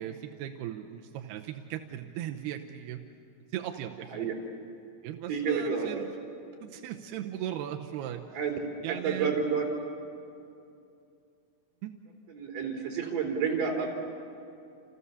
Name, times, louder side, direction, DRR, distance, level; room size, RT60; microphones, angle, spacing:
voice 1, 0.0-3.0 3.5-4.3 5.0-6.1 6.6-8.2 8.8-9.4 11.8-11.9, right 11 dB, 90° right, 3 dB, 2.9 m, -37 dB
voice 2, 5.3-6.1 8.3-8.6 8.9-9.7 12.3-13.9, right 6 dB, 55° right, 0 dB, 5.3 m, -30 dB
29.0 x 28.0 x 7.1 m, 2.6 s
omnidirectional pair, 4.6 m